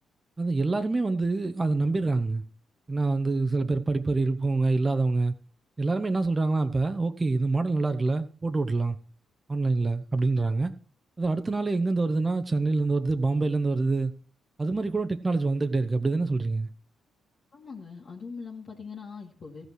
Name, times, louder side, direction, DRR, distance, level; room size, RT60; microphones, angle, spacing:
voice 1, 0.4-2.4 2.9-5.3 5.8-9.0 9.5-10.7 11.2-14.1 14.6-16.7, right 3 dB, 30° right, 1.0 m, -26 dB
voice 2, 17.5-19.7, left 5 dB, 50° left, 2.1 m, -41 dB
14.5 x 5.6 x 6.3 m
hypercardioid pair, 40°, 0 cm